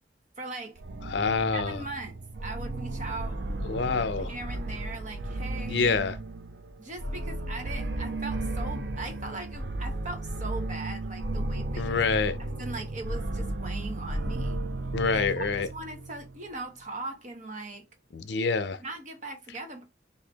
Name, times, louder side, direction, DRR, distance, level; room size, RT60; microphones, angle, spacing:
voice 1, 0.4-0.8 1.5-3.4 3.9-4.0 4.3-6.0 6.8-12.0 12.4-14.6 15.1-17.9 18.8-19.8, right 2 dB, 40° right, 1.1 m, -40 dB
sound 1, 0.8-16.4, right 2 dB, 70° right, 0.6 m, -34 dB
voice 2, 1.1-1.8 3.7-4.3 5.7-6.2 11.8-12.4 14.9-15.7 18.1-18.8, left 4 dB, 70° left, 0.5 m, -27 dB
3.2 x 2.8 x 4.4 m
head